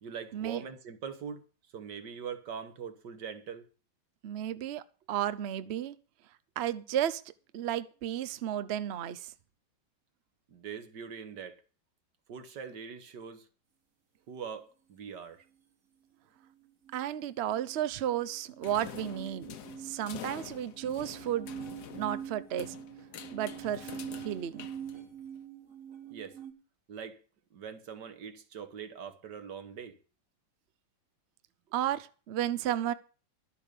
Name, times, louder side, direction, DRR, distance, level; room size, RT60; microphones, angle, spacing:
voice 1, 0.0-1.4 1.7-3.7 10.5-11.6 12.3-13.5 14.3-15.4 26.1-26.4 26.9-27.2 27.5-30.0, right 7 dB, 65° right, 1.9 m, -42 dB
voice 2, 4.2-6.0 6.6-7.2 7.5-9.3 16.9-19.5 19.8-21.5 22.0-22.7 23.3-24.7 31.7-32.9, right 11 dB, 85° right, 0.5 m, -33 dB
sound 1, 16.9-26.5, right 9 dB, 45° right, 1.7 m, -45 dB
sound 2, 18.6-25.4, left 9 dB, 60° left, 1.4 m, -47 dB
12.0 x 8.1 x 6.7 m
omnidirectional pair, 2.1 m